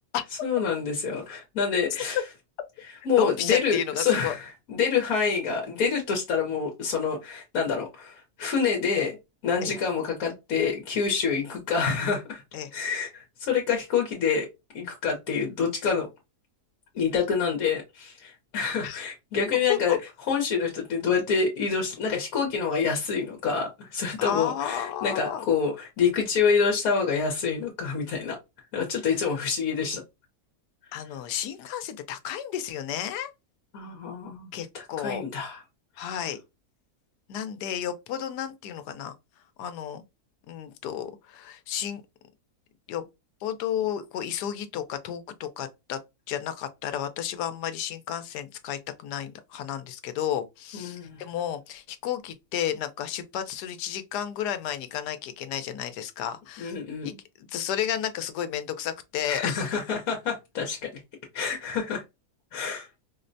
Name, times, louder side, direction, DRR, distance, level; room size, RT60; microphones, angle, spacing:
voice 1, 0.4-2.2 3.0-9.2 9.4-12.4 12.7-14.5 14.7-16.1 16.9-20.0 20.3-28.4 28.7-30.0 33.7-35.6 36.0-36.1 50.7-51.2 56.6-57.2 59.3-60.9 61.3-62.0 62.5-62.9, left 6 dB, 65° left, 1.2 m, -27 dB
voice 2, 3.2-4.3 9.6-9.7 12.5-12.7 18.8-19.0 19.7-20.0 24.2-25.4 30.9-33.3 34.5-35.2 36.0-36.4 37.3-39.1 39.6-40.0 40.5-42.0 42.9-43.1 43.4-46.0 46.3-56.7 57.0-59.8, left 10 dB, 85° left, 1.2 m, -32 dB
4.5 x 2.1 x 2.5 m
omnidirectional pair, 1.7 m